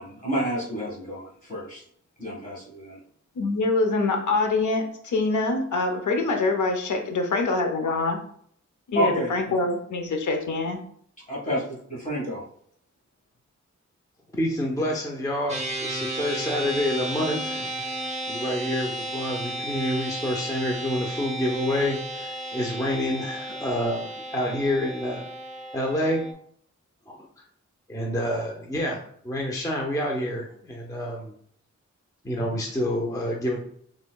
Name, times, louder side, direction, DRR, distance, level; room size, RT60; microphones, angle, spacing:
voice 1, 0.0-1.8 2.2-3.0 8.9-9.5 11.3-12.4, right 1 dB, 30° left, -5 dB, 1.6 m, -30 dB
voice 2, 3.4-8.2 8.9-10.8, left 3 dB, 85° left, 4 dB, 0.7 m, -25 dB
voice 3, 14.4-18.0 18.3-25.3 25.7-26.2 27.1-27.2 27.9-31.3 32.2-33.6, left 1 dB, 10° left, -1 dB, 0.5 m, -28 dB
sound 1, 15.5-26.3, right 1 dB, 25° right, 0.7 m, -33 dB
5.3 x 3.6 x 2.3 m, 0.64 s
wide cardioid pair, 155°, 29 cm